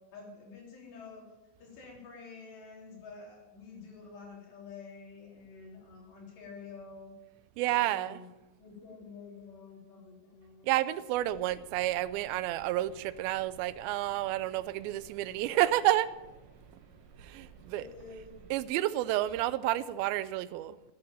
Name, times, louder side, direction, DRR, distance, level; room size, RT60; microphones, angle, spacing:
voice 1, 0.1-1.2 1.6-7.1 7.7-8.3 8.6-10.7 17.3-17.5 17.7-18.4, left 4 dB, 90° left, 5.8 m, -49 dB
voice 2, 7.6-8.2 10.6-16.1 17.2-17.8 18.5-20.8, right 15 dB, 80° right, 2.2 m, -30 dB
sound 1, 11.1-18.6, right 5 dB, 55° right, 2.6 m, -55 dB
11.5 x 10.5 x 8.9 m
omnidirectional pair, 4.7 m